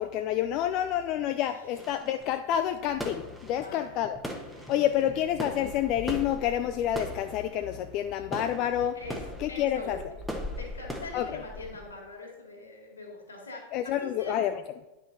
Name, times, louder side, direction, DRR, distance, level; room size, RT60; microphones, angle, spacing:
voice 1, 0.0-4.2 4.7-9.0 9.4-10.0 11.1-11.3 13.7-14.6, left 11 dB, 40° left, 8 dB, 0.4 m, -28 dB
sound 1, 1.8-11.9, equal, ahead, 1.2 m, -40 dB
voice 2, 3.5-4.0 4.5-5.1 8.9-10.3 10.6-14.4, left 2 dB, 70° left, 1 dB, 2.3 m, -43 dB
10.0 x 5.3 x 4.1 m, 1.0 s
figure-of-eight pair, 90°, 0 cm